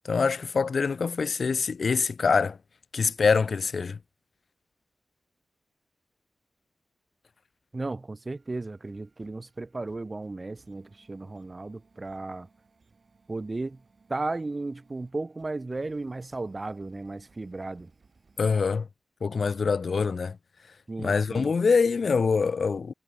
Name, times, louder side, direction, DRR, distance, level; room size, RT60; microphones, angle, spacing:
voice 1, 0.1-2.6 2.9-4.0 18.4-18.9 19.2-20.4 21.0-22.9, left 5 dB, 65° left, 0.5 m, -24 dB
voice 2, 7.7-12.5 13.3-13.8 14.1-17.9 20.9-21.5, right 2 dB, 35° right, 0.5 m, -35 dB
sound 1, 8.4-18.7, right 4 dB, 55° right, 6.2 m, -64 dB
wide cardioid pair, 85°, 0 cm